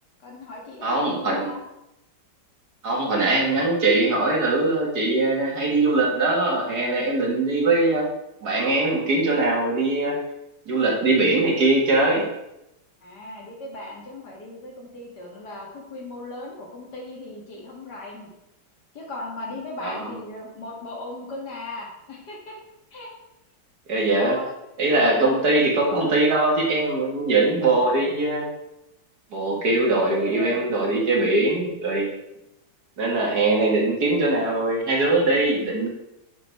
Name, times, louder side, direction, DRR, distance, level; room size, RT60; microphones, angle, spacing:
voice 1, 0.2-1.6 13.0-18.3 18.9-22.6 22.9-23.1 24.2-24.5 25.0-25.4 27.6-28.3 29.6-30.7 30.9-31.4, left 2 dB, 60° left, -2 dB, 2.7 m, -37 dB
voice 2, 0.8-1.5 2.8-8.1 8.4-10.2 10.7-12.3 19.8-20.1 23.9-24.4 24.8-28.5 29.3-32.1 33.0-35.9, right 2 dB, 60° right, -1 dB, 2.2 m, -21 dB
8.8 x 6.2 x 4.6 m, 0.87 s
omnidirectional pair, 2.0 m